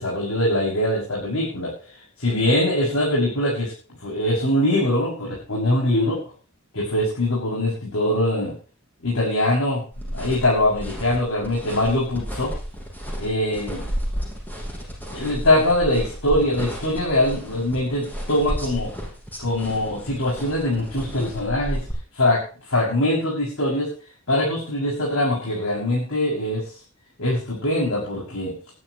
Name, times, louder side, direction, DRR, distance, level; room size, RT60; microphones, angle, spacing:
voice 1, 0.0-1.7 2.2-3.7 4.0-6.2 6.7-8.5 9.0-12.5 13.2-13.8 15.1-18.9 19.4-21.8 22.1-22.4 22.7-23.9 24.3-26.6 27.2-28.5, left 1 dB, 80° left, -5 dB, 6.6 m, -22 dB
sound 1, 9.9-21.9, equal, 10° left, 6.2 m, -33 dB
20.0 x 12.0 x 3.1 m, 0.37 s
head